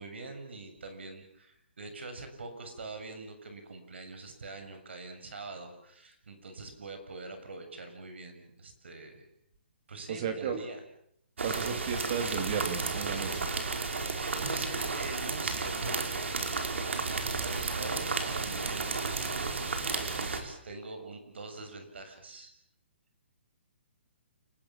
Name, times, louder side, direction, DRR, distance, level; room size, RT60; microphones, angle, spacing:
voice 1, 0.0-9.2 9.9-10.8 14.4-16.4 16.7-19.5 19.9-22.5, right 3 dB, 70° right, 7 dB, 6.9 m, -44 dB
voice 2, 10.1-10.6 11.4-13.5 20.7-20.8, right 7 dB, 30° right, 7 dB, 2.8 m, -34 dB
sound 1, 11.4-20.4, right 4 dB, 85° right, 5.3 m, -33 dB
30.0 x 20.0 x 7.4 m, 0.71 s
hypercardioid pair, 175°, 6 cm